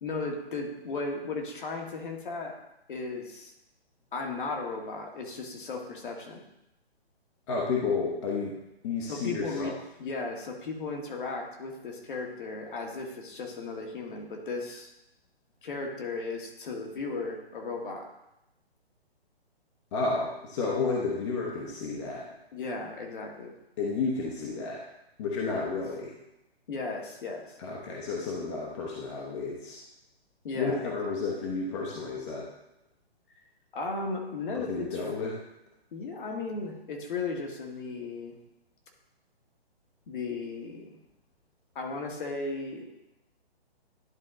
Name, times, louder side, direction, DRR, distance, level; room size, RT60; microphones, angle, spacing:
voice 1, 0.0-2.5 2.9-3.5 4.1-6.4 9.1-9.7 10.0-14.9 15.6-18.1 22.5-23.5 25.5-25.6 26.7-27.6 30.4-30.9 33.7-35.0 35.9-38.3 40.1-40.9 41.8-42.8, left 3 dB, 50° left, 1 dB, 1.7 m, -35 dB
voice 2, 7.5-8.6 8.8-9.7 19.9-22.2 23.8-24.8 25.2-26.1 27.6-29.8 30.5-32.5 34.5-35.3, left 4 dB, 30° left, -3 dB, 1.0 m, -31 dB
11.0 x 3.7 x 3.8 m, 0.88 s
hypercardioid pair, 145°, 32 cm